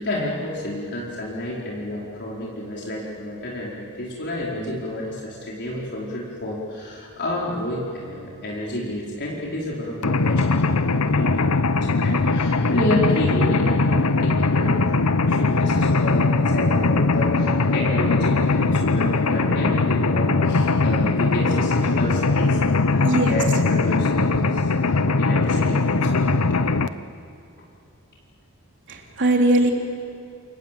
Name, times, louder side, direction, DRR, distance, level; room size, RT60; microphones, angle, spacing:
voice 1, 0.0-22.6 22.9-26.5, left 1 dB, 55° left, -5 dB, 4.8 m, -30 dB
Mechanisms, 10.0-26.9, left 3 dB, 80° left, 0.9 m, -20 dB
voice 2, 23.0-23.4 28.9-29.7, right 1 dB, 55° right, 1 dB, 3.7 m, -20 dB
28.5 x 27.0 x 7.8 m, 2.6 s
head